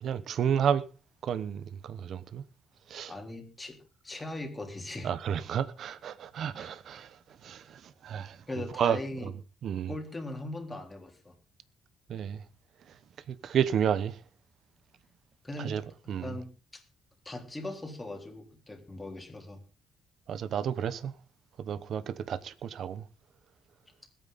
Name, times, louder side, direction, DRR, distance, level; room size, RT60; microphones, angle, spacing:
voice 1, 0.0-0.8 1.2-2.4 2.9-3.1 5.0-7.1 7.4-7.6 8.0-8.4 8.8-9.3 9.6-9.9 12.1-12.4 13.4-14.2 15.6-15.8 16.1-16.3 20.3-21.1 21.6-23.0, right 8 dB, 65° right, 0.9 m, -31 dB
voice 2, 3.1-3.8 4.0-5.1 6.6-6.7 8.5-9.3 9.9-11.3 15.4-15.8 16.2-16.8 17.3-19.6, left 2 dB, 20° left, 3.8 m, -39 dB
20.5 x 9.0 x 4.1 m
cardioid pair, 90°, 0 cm